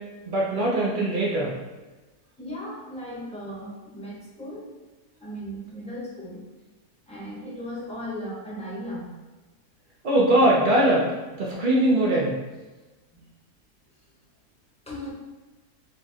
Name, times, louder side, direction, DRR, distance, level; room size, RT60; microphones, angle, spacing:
voice 1, 0.3-1.5 10.0-11.1 11.4-12.3, right 1 dB, 80° right, -4 dB, 0.4 m, -21 dB
voice 2, 2.4-4.7 5.2-6.4 7.1-9.2 13.1-13.2 14.9-15.1, equal, 5° left, -7 dB, 0.5 m, -36 dB
3.0 x 2.4 x 4.1 m, 1.2 s
omnidirectional pair, 1.6 m